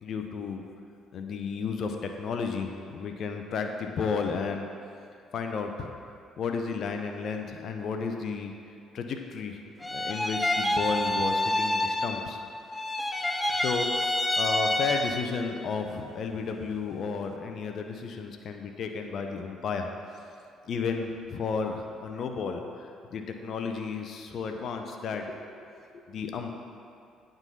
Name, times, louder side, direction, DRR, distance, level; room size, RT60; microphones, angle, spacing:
voice 1, 0.0-0.6 1.1-4.7 5.3-5.9 6.4-8.5 8.9-9.6 9.9-12.4 13.5-14.1 14.4-19.9 20.7-22.7 23.1-25.4 26.1-26.5, left 5 dB, 55° left, 4 dB, 0.7 m, -32 dB
sound 1, 9.8-12.5 12.7-15.5, left 1 dB, 15° left, 0.5 m, -28 dB
9.0 x 3.8 x 5.6 m, 2.5 s
hypercardioid pair, 50°, 0 cm